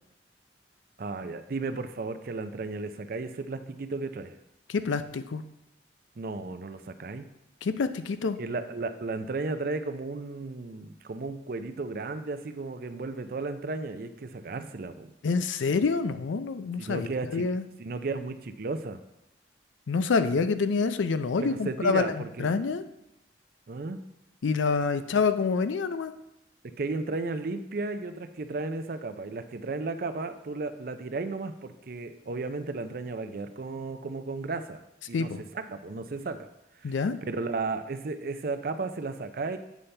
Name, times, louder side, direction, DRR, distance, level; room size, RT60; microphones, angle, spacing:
voice 1, 1.0-4.4 6.2-7.3 8.4-15.1 16.8-17.5 17.8-19.0 21.4-22.5 23.7-24.0 26.6-34.8 35.1-36.5 36.8-39.6, right 3 dB, 50° right, 9 dB, 0.5 m, -34 dB
voice 2, 4.7-5.4 7.6-8.4 15.2-17.6 19.9-22.8 24.4-26.1 35.1-35.4 36.8-37.2, left 4 dB, 85° left, 11 dB, 0.4 m, -27 dB
8.3 x 5.6 x 3.3 m, 0.88 s
head